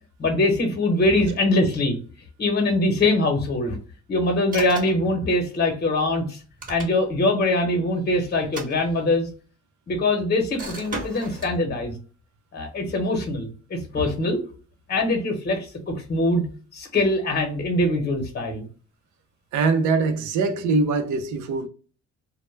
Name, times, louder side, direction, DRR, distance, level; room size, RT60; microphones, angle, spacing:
voice 1, 0.2-2.0 2.4-3.8 4.1-6.4 6.7-9.3 9.9-11.9 12.5-14.4 14.9-16.4 16.7-18.6, left 2 dB, 35° left, 0.9 m, -23 dB
sound 1, 4.5-5.1 6.4-7.3 8.4-9.3 10.6-11.6, right 2 dB, 25° right, 1.1 m, -36 dB
voice 2, 19.5-21.7, right 4 dB, 80° right, 0.5 m, -22 dB
2.1 x 2.1 x 3.2 m
cardioid pair, 90°, 30 cm